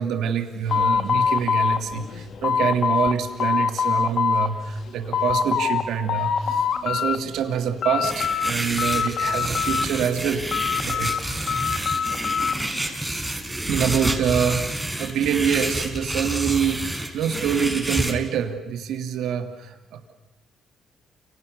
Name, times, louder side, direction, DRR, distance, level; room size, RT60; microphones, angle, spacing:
voice 1, 0.0-10.4 10.8-11.6 13.7-14.7 15.0-20.1, right 8 dB, 80° right, 6 dB, 3.0 m, -26 dB
sound 1, 0.7-3.1 3.4-4.5 4.9-5.8 6.1-7.2 7.5-8.5 8.8-10.0 10.5-12.6, left 7 dB, 60° left, 2.1 m, -24 dB
sound 2, 8.0-18.1, right 1 dB, 10° right, 5.0 m, -29 dB
30.0 x 28.0 x 6.9 m, 1.2 s
cardioid pair, 90°, 0 cm